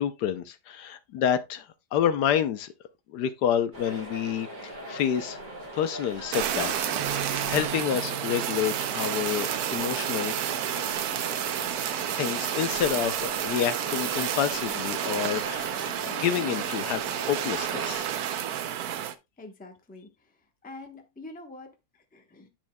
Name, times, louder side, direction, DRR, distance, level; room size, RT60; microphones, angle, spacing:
voice 1, 0.0-2.7 3.1-5.4 5.7-10.4 12.1-15.7 16.1-18.1, left 9 dB, 75° left, 1.2 m, -29 dB
sound 1, 3.7-18.0, equal, 25° right, 1.9 m, -41 dB
Fire, 6.3-19.1, right 10 dB, 70° right, 1.1 m, -30 dB
Bass guitar, 7.0-11.4 12.1-13.2, right 10 dB, 85° right, 0.5 m, -44 dB
voice 2, 19.4-22.5, left 2 dB, 5° left, 0.7 m, -46 dB
10.0 x 6.2 x 2.2 m
omnidirectional pair, 1.9 m